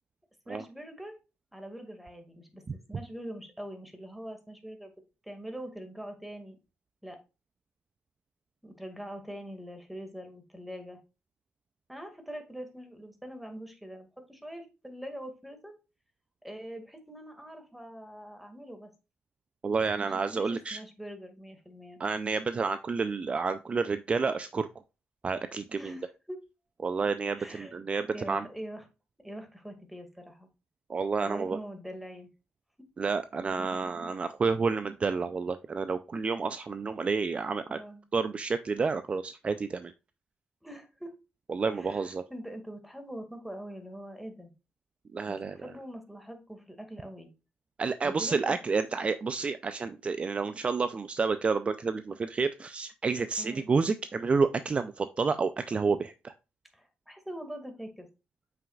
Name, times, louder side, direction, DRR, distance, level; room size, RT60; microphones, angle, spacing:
voice 1, 0.5-1.2 1.5-4.9 5.2-6.6 7.0-7.2 8.6-11.0 11.9-15.8 16.4-18.9 19.8-22.0 25.8-26.4 27.4-27.8 28.1-28.9 29.2-30.5 31.2-32.3 33.7-33.8 37.7-38.0 40.6-41.1 41.7-44.5 45.2-47.3 48.0-48.6 53.4-53.7 56.7-58.1, equal, 5° right, 5 dB, 2.0 m, -43 dB
voice 2, 19.6-20.8 22.0-24.7 25.2-25.9 26.8-28.5 30.9-31.6 33.0-37.8 38.1-39.9 41.5-42.2 45.1-45.6 47.8-56.3, right 4 dB, 35° right, 11 dB, 0.4 m, -30 dB
7.4 x 5.9 x 2.4 m, 0.29 s
cardioid pair, 80°, 4 cm